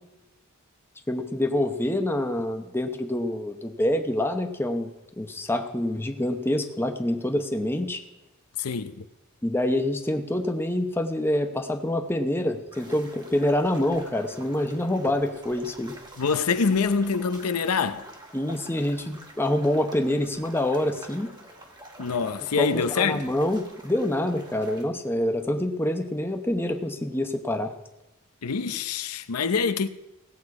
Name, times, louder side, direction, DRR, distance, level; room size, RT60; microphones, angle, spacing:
voice 1, 1.1-8.0 9.4-15.9 18.3-21.3 22.6-27.7, left 1 dB, 10° left, 0.8 m, -26 dB
voice 2, 8.6-9.0 16.2-18.1 22.0-23.3 28.4-29.9, left 5 dB, 85° left, 0.7 m, -25 dB
sound 1, 12.7-24.8, right 1 dB, 20° right, 1.5 m, -47 dB
17.0 x 8.1 x 4.8 m
head